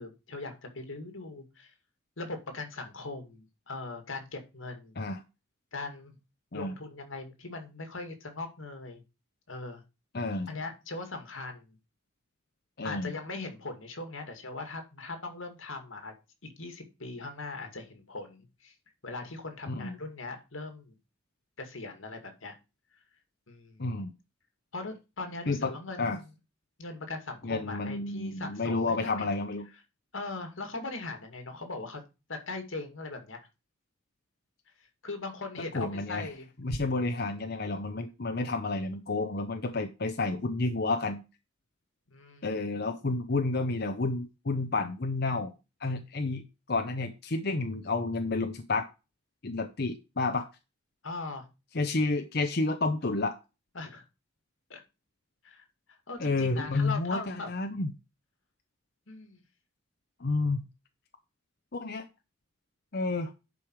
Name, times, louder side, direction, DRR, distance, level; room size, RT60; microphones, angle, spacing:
voice 1, 0.0-1.7 2.2-5.0 5.7-6.1 6.5-9.0 9.5-9.8 10.5-11.8 12.8-16.1 16.4-18.7 19.0-20.9 21.6-22.5 23.5-23.9 24.7-26.3 26.8-29.3 30.1-32.0 32.3-33.4 35.0-36.5 42.1-42.6 51.0-51.5 53.7-54.0 54.7-54.8 55.4-55.7 56.1-57.5 59.1-59.4, left 3 dB, 85° left, 6 dB, 2.3 m, -40 dB
voice 2, 10.1-10.5 12.8-13.1 19.7-20.0 23.8-24.1 25.5-25.7 26.0-26.2 27.4-29.7 35.7-36.3 36.6-41.2 42.4-45.5 45.8-48.9 49.4-50.5 51.7-53.4 56.2-57.9 60.2-60.7 61.7-62.1 62.9-63.3, left 3 dB, 55° left, 6 dB, 0.9 m, -30 dB
11.0 x 5.0 x 4.7 m, 0.28 s
head